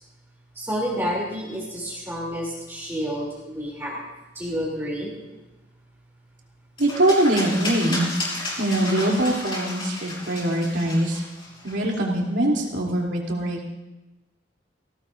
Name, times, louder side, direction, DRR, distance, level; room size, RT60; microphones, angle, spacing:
voice 1, 0.6-4.0 4.3-5.1, equal, 15° right, -5 dB, 2.9 m, -29 dB
sound 1, 6.8-12.0, left 1 dB, 30° left, 5.4 m, -32 dB
voice 2, 6.8-8.1 8.6-11.2 11.6-13.6, right 1 dB, 90° right, -3 dB, 3.0 m, -22 dB
19.5 x 16.5 x 2.6 m, 1.1 s
head